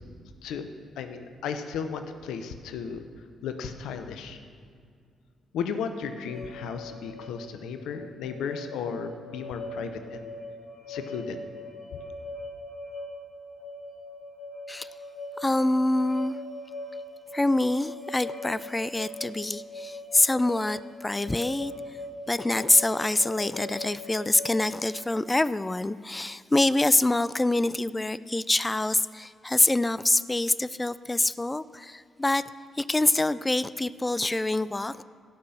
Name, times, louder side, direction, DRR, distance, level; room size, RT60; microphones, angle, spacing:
voice 1, 1.0-3.0 3.4-4.4 5.5-10.3 10.9-11.4, left 6 dB, 75° left, 8 dB, 0.7 m, -34 dB
sound 1, 6.2-25.0, left 2 dB, 60° left, 1.8 m, -41 dB
voice 2, 15.4-16.4 17.3-21.7 22.3-32.4 32.7-35.0, left 2 dB, 20° left, 17 dB, 0.4 m, -25 dB
16.5 x 5.9 x 6.4 m, 2.2 s
hypercardioid pair, 45°, 0 cm